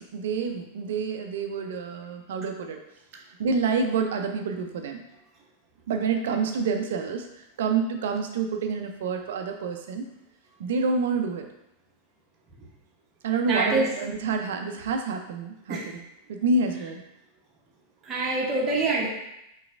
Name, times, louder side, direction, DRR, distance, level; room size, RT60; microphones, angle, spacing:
voice 1, 0.0-2.8 3.4-5.0 5.9-10.0 10.6-11.4 13.2-16.0 16.3-17.0, right 4 dB, 60° right, 5 dB, 0.5 m, -28 dB
voice 2, 13.4-13.9 15.7-15.9 18.0-19.1, right 2 dB, 25° right, -3 dB, 1.0 m, -25 dB
5.7 x 3.1 x 2.5 m, 0.86 s
figure-of-eight pair, 90°, 0 cm